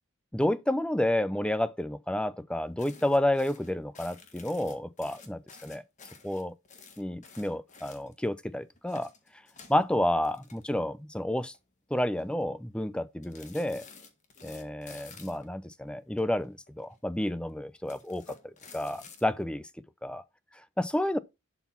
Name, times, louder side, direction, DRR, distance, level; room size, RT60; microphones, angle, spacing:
voice 1, 0.3-5.8 6.2-6.5 7.0-9.1 9.7-11.5 11.9-13.8 14.4-18.2 18.7-19.7 20.0-20.2 20.8-21.2, left 1 dB, 5° left, 0.5 m, -30 dB
sound 1, 2.8-8.3 8.7-11.1 11.3-11.6 12.0-12.4 13.2-15.5 16.2-17.0 17.7-19.2, left 5 dB, 35° left, 1.7 m, -52 dB
11.5 x 4.1 x 5.6 m
head